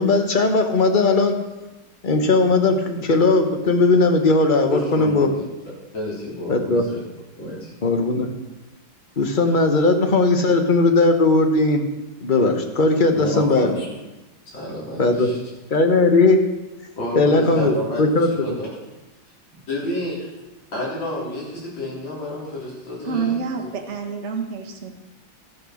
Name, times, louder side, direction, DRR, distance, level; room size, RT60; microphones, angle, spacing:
voice 1, 0.0-1.3 2.0-5.3 6.5-6.8 7.8-8.3 9.2-11.8 12.2-13.8 15.0-15.3 15.7-16.4 17.1-18.5, left 3 dB, 35° left, 6 dB, 0.9 m, -18 dB
voice 2, 4.7-5.4 5.9-7.0 7.4-7.7 13.1-14.0 14.5-15.4 17.0-18.7 19.7-20.3 20.7-23.7, left 1 dB, 70° left, -6 dB, 4.5 m, -30 dB
voice 3, 23.0-25.0, right 6 dB, 40° right, 3 dB, 1.5 m, -27 dB
13.0 x 6.8 x 6.4 m, 1.0 s
omnidirectional pair, 2.2 m